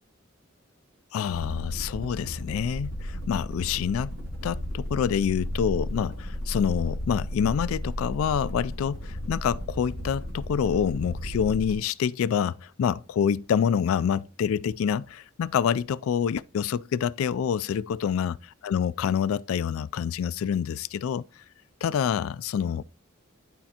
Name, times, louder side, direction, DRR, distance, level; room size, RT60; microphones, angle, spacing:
voice 1, 1.1-4.1 4.4-18.3 18.6-21.2 21.8-22.8, left 8 dB, 80° left, 0.3 m, -27 dB
sound 1, 1.2-11.8, equal, 85° right, 2.5 m, -34 dB
11.5 x 4.3 x 2.8 m
head